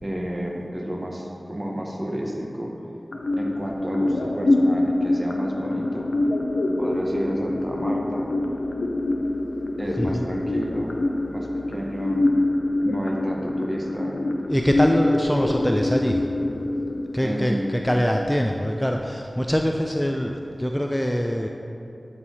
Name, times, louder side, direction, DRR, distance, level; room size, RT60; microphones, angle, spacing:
voice 1, 0.0-2.7 3.4-6.1 6.8-8.3 9.8-11.0 11.3-12.2 12.8-14.2 17.2-17.7, equal, 30° right, -1 dB, 1.0 m, -31 dB
sound 1, 3.1-19.1, left 2 dB, 80° left, 0.5 m, -25 dB
voice 2, 10.0-10.3 14.5-16.2 17.1-21.5, equal, 10° left, 2 dB, 0.3 m, -23 dB
10.5 x 4.6 x 2.8 m, 2.7 s
wide cardioid pair, 45°, 0 cm